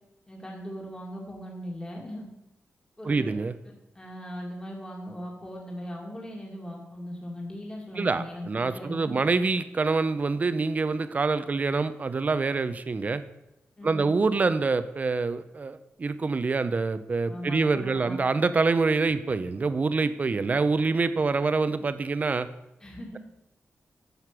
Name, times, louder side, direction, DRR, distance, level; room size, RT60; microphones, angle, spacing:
voice 1, 0.3-2.3 3.0-3.3 3.9-9.2 13.8-14.1 17.3-18.2 22.8-23.2, equal, 15° left, -2 dB, 2.3 m, -39 dB
voice 2, 3.0-3.5 8.0-13.2 13.8-22.5, right 4 dB, 35° right, 12 dB, 0.7 m, -26 dB
11.0 x 6.5 x 6.0 m, 0.93 s
wide cardioid pair, 115°, 4 cm